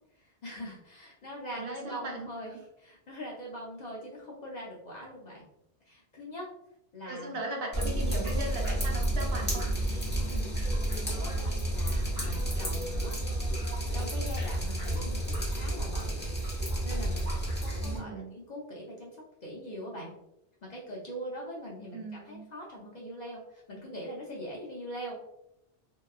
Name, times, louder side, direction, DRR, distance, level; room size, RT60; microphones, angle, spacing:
voice 1, 0.1-2.5 2.8-5.4 5.9-6.5 6.9-7.4 10.2-13.2 13.5-13.6 13.9-16.2 16.8-20.1 20.6-25.3, equal, 50° left, -4 dB, 0.6 m, -42 dB
voice 2, 1.5-2.3 7.0-9.7 17.8-18.3 21.9-22.5, right 1 dB, 65° right, 1 dB, 0.8 m, -38 dB
Drip, 7.7-18.0, right 1 dB, 10° left, 0.7 m, -31 dB
2.9 x 2.2 x 2.2 m, 0.84 s
omnidirectional pair, 1.1 m